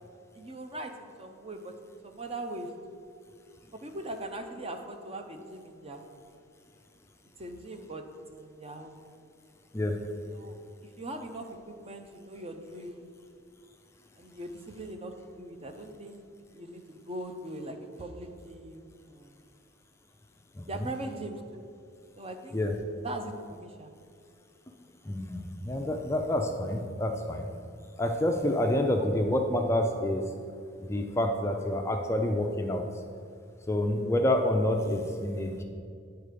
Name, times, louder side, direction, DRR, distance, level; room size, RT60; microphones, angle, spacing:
voice 1, 0.3-3.0 3.8-6.2 7.4-8.0 8.3-9.0 10.3-10.6 11.0-13.0 14.2-16.2 16.5-19.4 20.7-21.6 22.1-22.7 23.0-23.9, right 1 dB, 30° right, 5 dB, 0.6 m, -40 dB
voice 2, 9.7-10.1 20.6-20.9 22.5-22.7 25.1-27.5 28.0-30.3 30.9-32.9 33.7-35.6, left 1 dB, 15° left, 3 dB, 0.4 m, -28 dB
9.6 x 4.5 x 5.0 m, 2.4 s
head